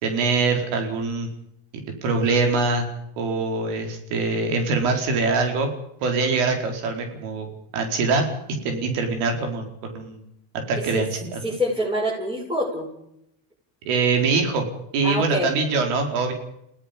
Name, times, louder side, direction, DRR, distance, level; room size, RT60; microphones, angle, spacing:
voice 1, 0.0-1.3 2.0-2.8 3.2-5.7 6.0-7.5 7.7-10.2 10.5-11.4 13.8-14.6 14.9-16.3, right 4 dB, 90° right, 4 dB, 4.9 m, -23 dB
voice 2, 11.4-12.9 15.0-15.5, equal, 10° right, -6 dB, 7.6 m, -26 dB
29.5 x 17.5 x 5.4 m, 0.78 s
cardioid pair, 105°, 49 cm